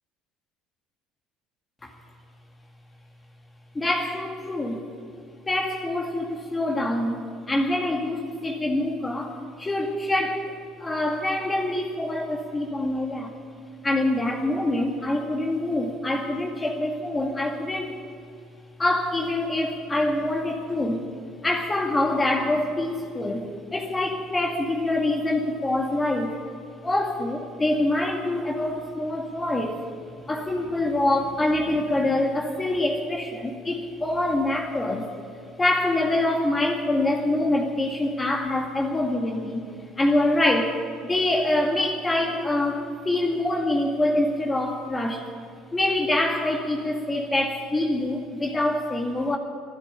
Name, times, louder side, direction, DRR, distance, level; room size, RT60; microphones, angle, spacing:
voice 1, 3.7-4.8 5.5-13.3 13.8-18.0 18.8-21.1 21.4-26.4 26.8-29.8 30.3-35.1 35.6-39.6 40.0-40.8 41.1-45.3 45.7-49.4, left 1 dB, 20° left, 1 dB, 2.1 m, -25 dB
12.5 x 11.5 x 10.0 m, 2.3 s
hypercardioid pair, 65°, 0 cm